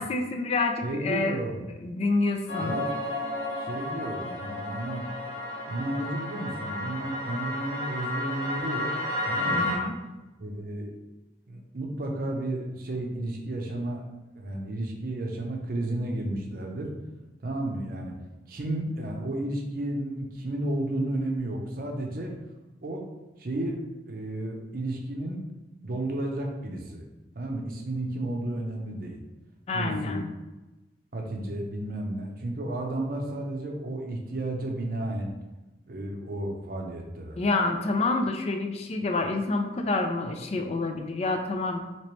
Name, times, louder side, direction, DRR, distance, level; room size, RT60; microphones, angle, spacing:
voice 1, 0.0-1.4 1.8-2.8 9.5-10.0 29.7-30.3 37.4-41.8, left 3 dB, 35° left, 5 dB, 0.3 m, -28 dB
voice 2, 0.8-1.7 2.6-2.9 3.6-5.0 5.7-8.9 9.2-9.8 10.4-10.9 11.5-14.1 14.4-16.9 17.4-18.1 18.5-22.3 22.8-23.1 23.4-23.8 24.0-25.4 25.8-27.0 27.3-29.2 29.7-30.2 31.1-35.3 35.9-37.4, right 1 dB, 55° right, 1 dB, 0.6 m, -32 dB
sound 1, 2.5-9.8, left 1 dB, 85° left, 1.5 m, -32 dB
3.0 x 2.9 x 3.0 m, 1.1 s
head